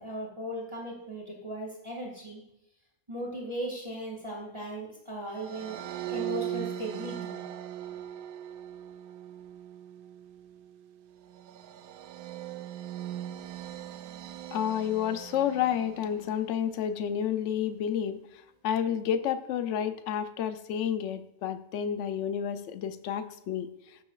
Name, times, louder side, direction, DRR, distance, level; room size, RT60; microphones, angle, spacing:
voice 1, 0.0-2.4 3.1-5.8 6.1-7.4, right 1 dB, 20° right, -3 dB, 2.0 m, -37 dB
sound 1, 5.3-16.7, right 11 dB, 90° right, 1.0 m, -40 dB
voice 2, 14.5-18.2 18.6-23.7, left 9 dB, 65° left, 10 dB, 0.9 m, -30 dB
14.5 x 6.8 x 2.4 m, 0.85 s
omnidirectional pair, 1.5 m